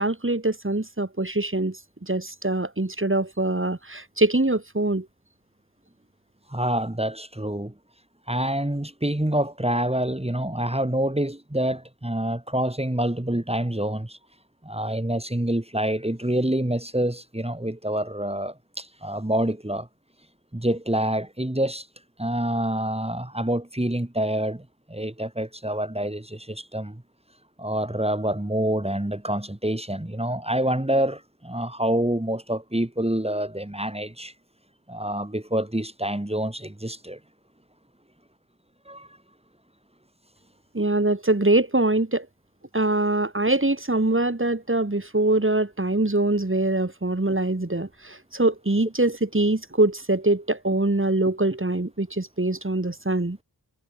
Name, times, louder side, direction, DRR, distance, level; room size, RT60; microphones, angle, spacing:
voice 1, 0.0-5.1 40.7-42.3 42.7-53.4, right 2 dB, 30° right, 3.4 m, -23 dB
voice 2, 6.5-7.7 8.3-14.2 14.6-19.9 20.5-21.9 22.2-27.0 27.6-34.3 34.9-37.2 38.9-39.1, right 1 dB, 15° right, 3.2 m, -27 dB
wide cardioid pair, 50°, 40 cm